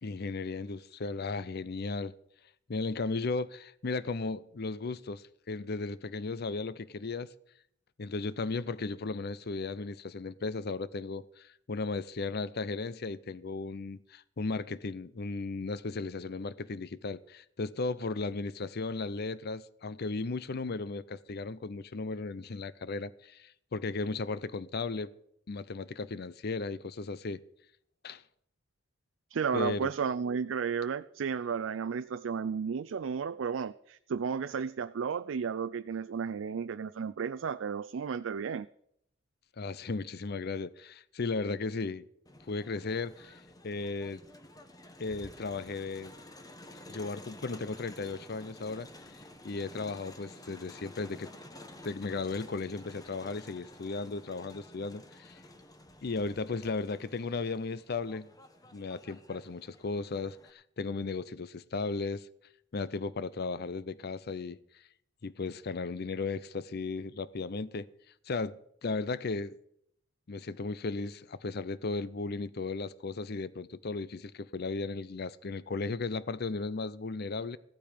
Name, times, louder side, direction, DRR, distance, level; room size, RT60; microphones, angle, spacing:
voice 1, 0.0-2.1 2.7-7.3 8.0-25.1 25.5-27.4 28.0-28.2 29.5-29.9 39.6-42.0 42.5-44.2 45.0-46.1 46.9-48.9 49.4-51.3 51.8-55.4 56.0-58.3 58.7-62.3 62.7-64.6 65.2-67.9 68.3-69.6 70.3-77.6, left 3 dB, 55° left, 0.6 m, -35 dB
voice 2, 29.3-38.7, right 6 dB, 90° right, 0.4 m, -33 dB
Crowd, 42.3-60.5, left 1 dB, 20° left, 1.1 m, -52 dB
15.5 x 11.5 x 5.1 m
head